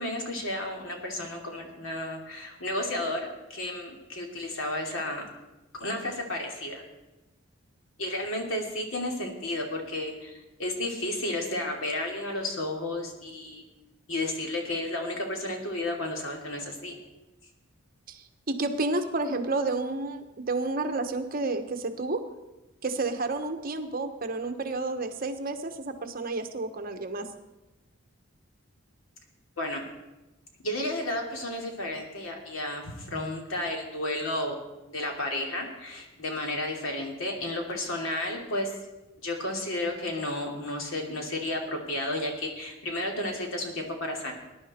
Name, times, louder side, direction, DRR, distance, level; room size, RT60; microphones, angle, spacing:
voice 1, 0.0-5.3 5.8-6.8 8.0-13.6 14.1-16.9 29.6-29.9 30.6-34.5 34.9-38.7 39.2-44.3, left 1 dB, 85° left, 1 dB, 2.9 m, -32 dB
voice 2, 18.1-22.2 22.8-27.3, right 3 dB, 45° right, 7 dB, 1.1 m, -30 dB
20.0 x 10.5 x 4.4 m, 1.0 s
head